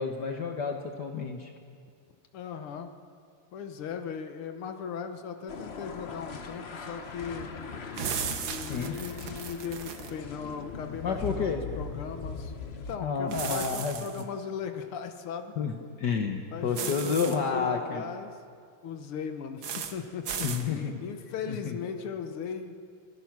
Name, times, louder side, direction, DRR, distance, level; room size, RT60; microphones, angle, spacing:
voice 1, 0.0-1.5 8.7-9.0 11.0-11.6 13.0-14.2 15.6-18.0 20.4-21.0 21.5-21.8, left 5 dB, 55° left, 4 dB, 1.6 m, -30 dB
voice 2, 2.3-2.9 3.5-7.5 8.4-12.5 12.9-15.6 16.5-18.4 18.8-22.8, left 6 dB, 85° left, 7 dB, 2.1 m, -38 dB
sound 1, 5.5-13.0, left 5 dB, 40° left, 1.0 m, -40 dB
sound 2, 8.0-10.1 13.3-14.2 16.7-17.4 19.6-19.9 20.3-20.6, right 7 dB, 70° right, 2.0 m, -35 dB
25.0 x 17.5 x 6.0 m, 2.2 s
omnidirectional pair, 2.3 m